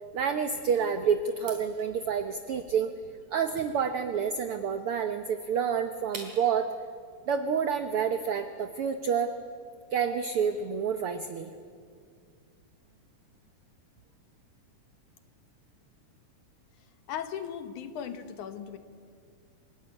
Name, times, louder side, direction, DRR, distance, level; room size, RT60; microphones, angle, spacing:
voice 1, 0.1-2.9 3.3-6.7 7.3-9.3 9.9-11.5, right 7 dB, 75° right, 8 dB, 1.3 m, -28 dB
sound 1, 1.3-6.6, right 3 dB, 60° right, 4.9 m, -49 dB
voice 2, 17.1-18.8, left 8 dB, 70° left, 9 dB, 2.6 m, -37 dB
27.0 x 17.0 x 9.8 m, 2.2 s
omnidirectional pair, 3.7 m